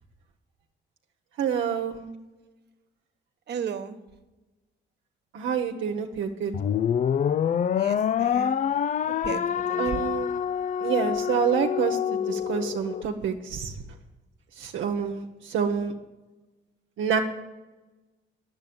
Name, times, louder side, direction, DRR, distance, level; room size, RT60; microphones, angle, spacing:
voice 1, 1.4-2.0 5.3-6.5 9.8-10.3 10.8-13.7 14.6-15.9 17.0-17.2, right 7 dB, 75° right, 3 dB, 1.1 m, -27 dB
voice 2, 3.5-4.0 7.7-8.6 9.2-10.1, right 7 dB, 60° right, 8 dB, 1.3 m, -35 dB
sound 1, 6.5-13.0, left 8 dB, 40° left, 0.4 m, -26 dB
10.5 x 8.0 x 8.7 m, 1.1 s
cardioid pair, 90°, 20 cm